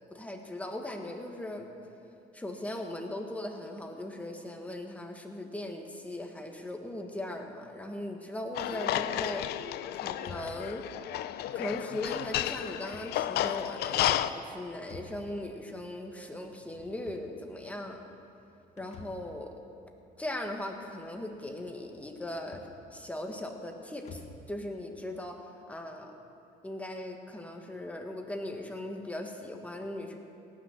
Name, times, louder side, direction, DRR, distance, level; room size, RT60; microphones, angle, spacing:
voice 1, 0.1-1.7 2.3-10.8 11.5-18.0 18.8-19.5 20.2-24.2 24.5-26.1 26.6-30.2, left 1 dB, 10° left, 3 dB, 1.4 m, -39 dB
sound 1, 8.5-14.3, left 12 dB, 70° left, 0.5 m, -32 dB
sound 2, 10.2-24.5, left 3 dB, 40° left, 1.4 m, -53 dB
18.0 x 6.5 x 7.2 m, 2.7 s
cardioid pair, 110°, 17 cm